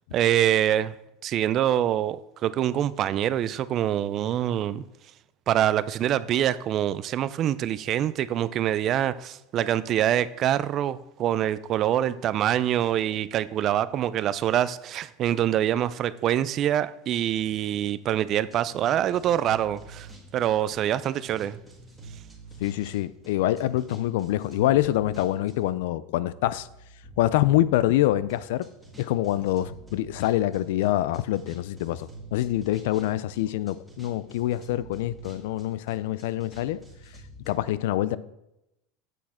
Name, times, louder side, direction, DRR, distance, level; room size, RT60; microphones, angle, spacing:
voice 1, 0.1-0.9 1.2-4.8 5.5-21.6, right 11 dB, 35° right, 0.3 m, -25 dB
sound 1, 18.5-25.8 26.4-37.6, right 2 dB, ahead, 1.7 m, -48 dB
voice 2, 22.6-26.7 27.2-28.7 29.0-36.8 37.5-38.2, left 14 dB, 75° left, 0.4 m, -25 dB
8.2 x 6.3 x 4.3 m
supercardioid pair, 155°, 0 cm